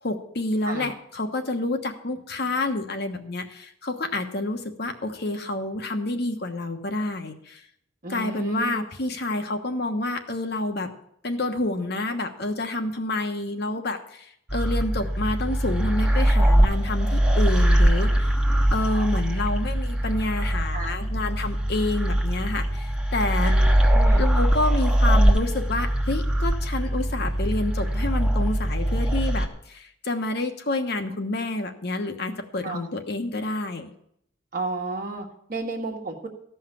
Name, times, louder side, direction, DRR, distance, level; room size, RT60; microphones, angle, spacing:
voice 1, 0.0-7.6 8.1-10.9 11.2-18.3 18.7-23.5 24.2-33.9, left 2 dB, 50° left, 6 dB, 1.2 m, -28 dB
voice 2, 8.0-8.8 20.7-20.9 23.4-24.2 32.6-32.8 34.5-36.3, right 3 dB, 45° right, 0 dB, 1.4 m, -33 dB
sound 1, 14.5-29.5, right 1 dB, 5° right, 1.0 m, -22 dB
15.0 x 5.7 x 7.5 m, 0.70 s
head